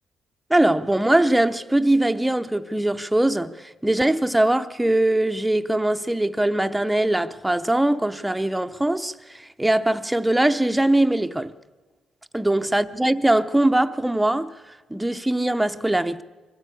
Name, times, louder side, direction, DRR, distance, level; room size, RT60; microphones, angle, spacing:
voice 1, 0.5-11.5 12.3-16.2, right 1 dB, 5° right, 0.8 m, -21 dB
24.0 x 15.5 x 8.4 m
cardioid pair, 105°, 0 cm